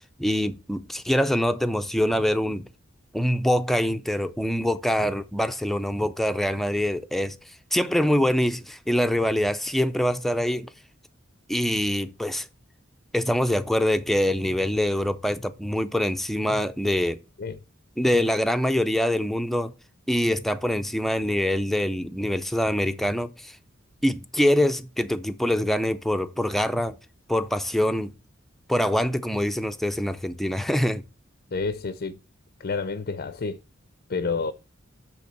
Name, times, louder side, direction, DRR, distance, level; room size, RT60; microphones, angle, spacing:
voice 1, 0.2-2.7 3.1-7.4 7.7-10.7 11.5-12.5 13.1-17.2 18.0-19.7 20.1-23.6 24.0-27.0 27.3-28.1 28.7-31.0, equal, ahead, 0.5 m, -24 dB
voice 2, 31.5-32.2 32.6-33.6 34.1-34.5, left 4 dB, 50° left, 0.5 m, -29 dB
8.0 x 3.6 x 6.6 m
head